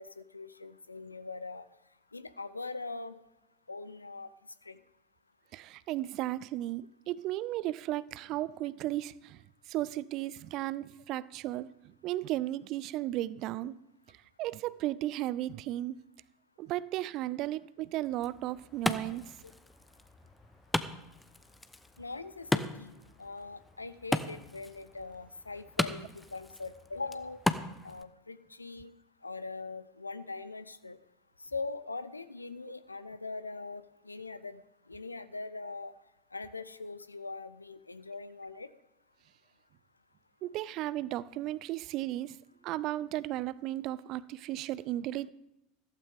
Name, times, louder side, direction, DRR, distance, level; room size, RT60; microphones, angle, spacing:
voice 1, 0.0-1.6 2.1-3.2 3.7-4.3 4.6-4.8 22.0-22.9 23.2-27.4 27.8-28.9 29.2-31.0 31.5-34.6 34.9-35.9 36.3-38.7, left 3 dB, 80° left, 0.7 m, -41 dB
voice 2, 5.5-9.4 9.7-11.7 12.0-13.8 14.4-15.9 16.6-19.3 40.4-42.4 42.6-45.3, right 15 dB, 45° right, 0.5 m, -35 dB
Wood, 18.0-28.0, left 2 dB, 10° left, 0.8 m, -37 dB
15.0 x 14.0 x 3.6 m
figure-of-eight pair, 80°, 0 cm